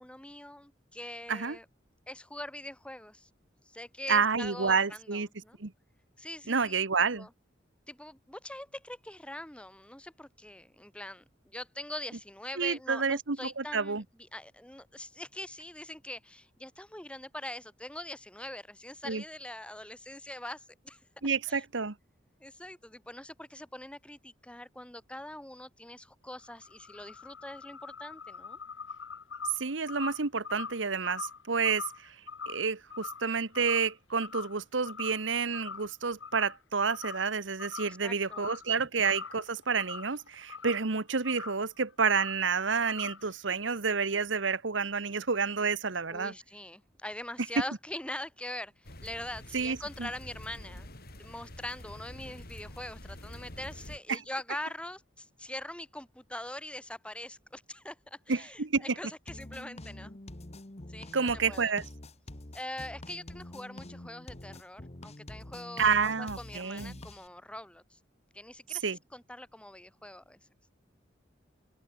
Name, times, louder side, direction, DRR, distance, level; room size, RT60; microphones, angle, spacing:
voice 1, 0.0-1.6 2.1-3.3 3.6-5.6 6.2-6.8 7.1-7.3 7.9-14.0 14.3-21.0 21.5-21.6 22.4-28.6 37.9-38.5 46.1-60.1 60.9-61.7 62.5-67.8 68.3-70.4, left 1 dB, 5° left, 1.6 m, -43 dB
voice 2, 4.1-5.3 5.6-5.7 6.5-7.3 12.6-14.0 19.0-19.2 21.2-21.9 29.6-32.1 32.5-46.3 49.5-50.1 54.1-54.2 58.3-58.9 61.1-61.8 65.8-67.0 68.7-69.0, right 5 dB, 70° right, 1.2 m, -29 dB
sound 1, 26.3-33.9 34.2-34.6 34.9-35.9 36.2-36.6 36.9-37.3 37.6-38.7 39.0-40.9 41.2-41.6 42.0-42.4 42.8-43.3, left 6 dB, 75° left, 1.3 m, -43 dB
sound 2, 48.8-54.0, left 1 dB, 55° left, 5.9 m, -47 dB
sound 3, 59.3-67.3, left 1 dB, 35° left, 1.5 m, -46 dB
open air
head